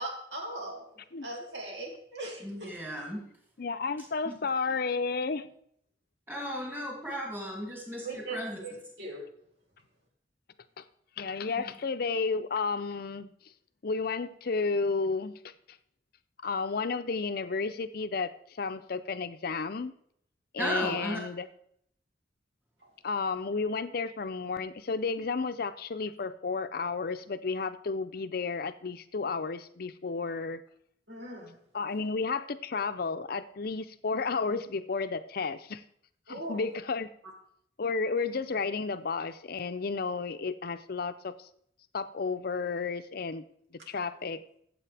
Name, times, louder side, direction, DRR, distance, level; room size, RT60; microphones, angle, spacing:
voice 1, 0.0-0.9 1.2-2.7 8.0-9.3 31.1-31.6 36.3-36.6, right 2 dB, 75° right, 1 dB, 2.2 m, -39 dB
voice 2, 2.4-3.3 4.2-4.4 6.3-8.6 20.6-21.2, equal, 10° right, -3 dB, 2.9 m, -35 dB
voice 3, 3.6-5.5 10.8-10.9 11.2-13.3 13.8-15.3 16.4-19.9 20.5-21.5 23.0-30.6 31.7-35.8 36.3-37.1 37.8-41.3 41.9-43.4 43.9-44.4, left 4 dB, 55° left, 11 dB, 0.6 m, -32 dB
14.0 x 7.9 x 3.4 m, 0.68 s
head